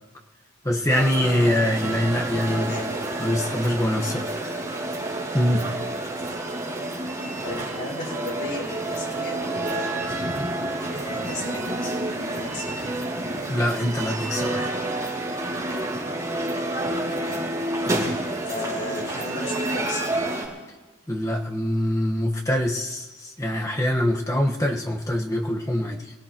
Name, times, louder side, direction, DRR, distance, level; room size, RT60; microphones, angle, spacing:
voice 1, 0.6-2.7 3.2-4.3 5.3-5.7 13.5-14.7 17.9-18.1 21.1-26.1, left 1 dB, 15° left, 0 dB, 1.3 m, -24 dB
sound 1, 0.9-20.5, right 1 dB, 15° right, 5.8 m, -29 dB
voice 2, 2.5-3.0 7.4-10.2 10.9-11.9 12.2-12.6 17.2-17.4 18.4-20.1, left 1 dB, 60° left, -3 dB, 6.4 m, -35 dB
27.5 x 17.0 x 3.0 m, 1.2 s
head